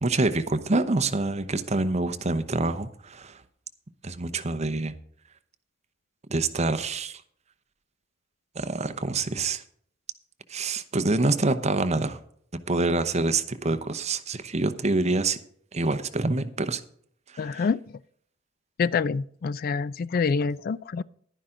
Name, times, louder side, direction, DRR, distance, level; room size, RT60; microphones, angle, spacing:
voice 1, 0.0-3.4 4.0-4.9 6.3-7.2 8.5-9.6 10.5-12.2 12.7-15.4 15.7-16.8, right 3 dB, 35° right, 0.8 m, -26 dB
voice 2, 17.4-17.8 18.8-21.0, left 5 dB, 50° left, 0.3 m, -26 dB
11.0 x 10.0 x 3.8 m
head